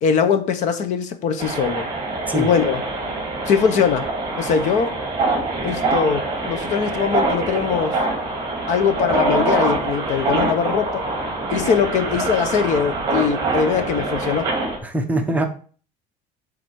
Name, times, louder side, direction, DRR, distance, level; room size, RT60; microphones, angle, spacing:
voice 1, 0.0-1.9 2.3-2.8 3.5-4.1 4.4-5.0 5.6-8.0 8.7-11.0 11.5-14.5, left 6 dB, 45° left, 1.0 m, -21 dB
sound 1, 1.4-14.8, right 2 dB, 25° right, 2.3 m, -24 dB
voice 2, 14.8-15.4, right 1 dB, 10° right, 0.8 m, -22 dB
7.5 x 4.0 x 6.3 m
cardioid pair, 170°, 17 cm